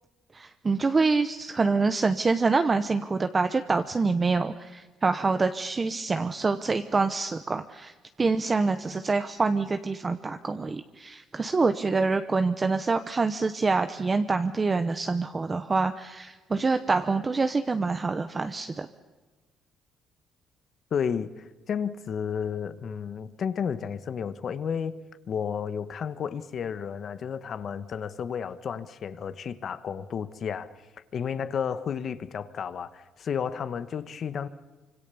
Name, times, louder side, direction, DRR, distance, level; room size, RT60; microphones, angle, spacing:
voice 1, 0.3-18.9, right 4 dB, 20° right, 0.9 m, -26 dB
voice 2, 20.9-30.7 31.1-34.5, left 7 dB, 45° left, 1.4 m, -32 dB
26.0 x 25.0 x 7.1 m
cardioid pair, 140°, 0 cm